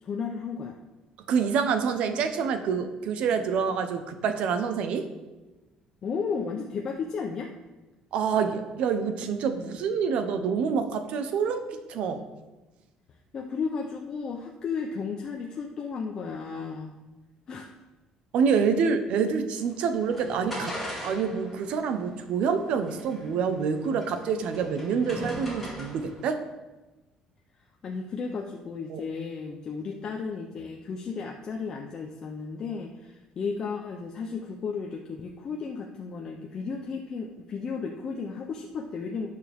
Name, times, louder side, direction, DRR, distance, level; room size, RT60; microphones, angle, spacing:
voice 1, 0.0-0.8 6.0-7.5 13.3-16.9 17.5-17.7 27.8-39.3, left 5 dB, 30° left, 1 dB, 0.8 m, -34 dB
voice 2, 1.3-5.1 8.1-12.2 18.3-20.7 21.0-26.4 28.9-29.0, right 6 dB, 55° right, 8 dB, 1.0 m, -27 dB
sound 1, 19.6-26.2, left 1 dB, 5° left, 3.9 m, -40 dB
17.5 x 6.6 x 3.6 m, 1.1 s
cardioid pair, 175°, 2 cm